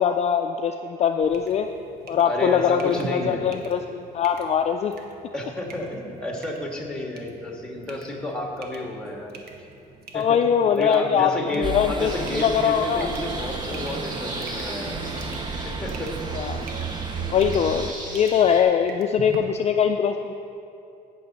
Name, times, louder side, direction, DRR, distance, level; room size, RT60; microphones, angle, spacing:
voice 1, 0.0-1.7 2.1-4.9 10.1-13.1 16.4-16.6 17.2-20.3, left 8 dB, 40° left, 6 dB, 0.4 m, -22 dB
sound 1, 1.2-19.4, right 4 dB, 65° right, 1.2 m, -45 dB
voice 2, 2.2-3.5 5.3-9.4 10.1-10.4 10.7-15.1 15.5-16.2, left 1 dB, 5° left, 1 dB, 1.8 m, -31 dB
street party, 11.6-17.9, right 4 dB, 25° right, 0.6 m, -32 dB
sound 2, 12.0-18.6, right 1 dB, 50° right, 1.9 m, -38 dB
16.5 x 6.9 x 4.2 m, 2.7 s
cardioid pair, 110°, 17 cm